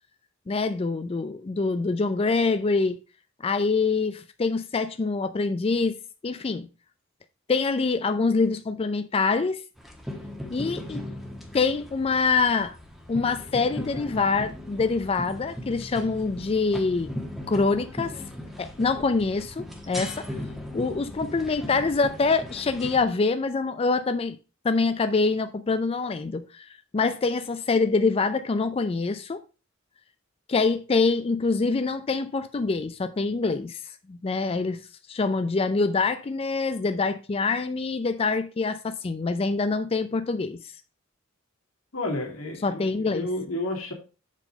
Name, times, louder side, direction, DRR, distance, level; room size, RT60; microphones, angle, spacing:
voice 1, 0.5-3.0 3.4-6.0 6.2-6.7 7.5-9.6 10.5-11.0 11.5-12.7 13.1-17.1 17.5-18.2 18.6-20.3 20.7-24.4 24.6-26.6 26.9-29.4 30.5-33.8 34.1-34.8 35.1-40.6 42.6-43.3, left 4 dB, 30° left, 0.4 m, -25 dB
sound 1, 9.8-23.0, left 1 dB, ahead, 1.3 m, -38 dB
voice 2, 41.9-43.9, left 2 dB, 90° left, 2.2 m, -31 dB
7.4 x 3.8 x 5.1 m
head